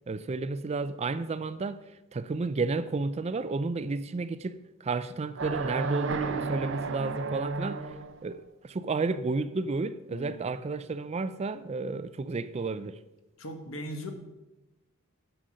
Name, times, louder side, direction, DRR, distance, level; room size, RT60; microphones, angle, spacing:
voice 1, 0.1-1.8 2.1-7.9 8.2-13.0, right 3 dB, 30° right, 0.4 m, -32 dB
sound 1, 5.4-8.2, right 4 dB, 60° right, 0.7 m, -32 dB
voice 2, 10.1-10.5 13.4-14.1, equal, 65° left, 1.4 m, -39 dB
9.1 x 6.6 x 6.3 m
head